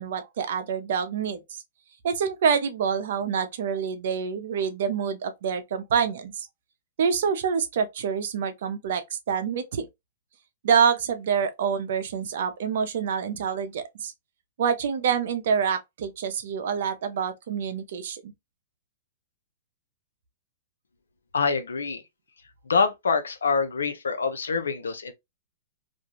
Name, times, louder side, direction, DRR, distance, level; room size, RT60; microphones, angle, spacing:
voice 1, 0.0-1.4 2.0-6.5 7.0-9.9 10.6-14.1 14.6-18.3, right 7 dB, 65° right, 0.6 m, -26 dB
voice 2, 21.3-22.0 22.7-25.1, left 5 dB, 90° left, 0.6 m, -25 dB
2.6 x 2.3 x 2.9 m
hypercardioid pair, 130°, 0 cm